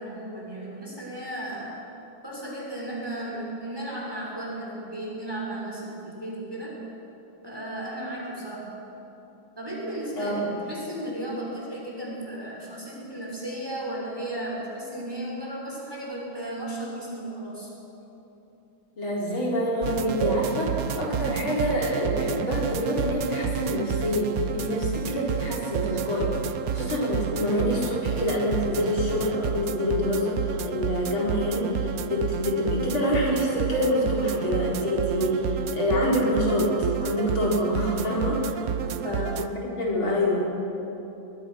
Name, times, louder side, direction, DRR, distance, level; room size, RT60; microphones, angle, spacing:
voice 1, 0.0-1.8 2.2-6.8 7.4-8.7 9.6-17.7 38.7-39.2, right 1 dB, 10° right, -4 dB, 6.3 m, -35 dB
voice 2, 10.2-10.5 19.0-26.4 26.7-36.7 37.0-38.4 39.0-40.5, left 1 dB, 80° left, -4 dB, 5.3 m, -26 dB
sound 1, 19.8-39.5, right 8 dB, 60° right, 0.9 m, -30 dB
23.5 x 22.0 x 6.6 m, 3.0 s
omnidirectional pair, 2.2 m